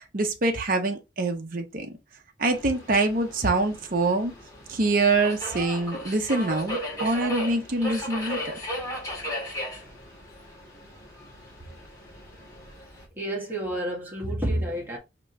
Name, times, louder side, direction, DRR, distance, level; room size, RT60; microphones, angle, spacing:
voice 1, 0.0-1.9 2.4-4.3 4.7-8.5, right 2 dB, 50° right, 0.9 m, -25 dB
Subway metro underground, 2.5-13.0, equal, 20° left, 2.1 m, -36 dB
voice 2, 13.2-15.0, right 1 dB, 10° right, 1.6 m, -29 dB
4.9 x 3.0 x 3.2 m
head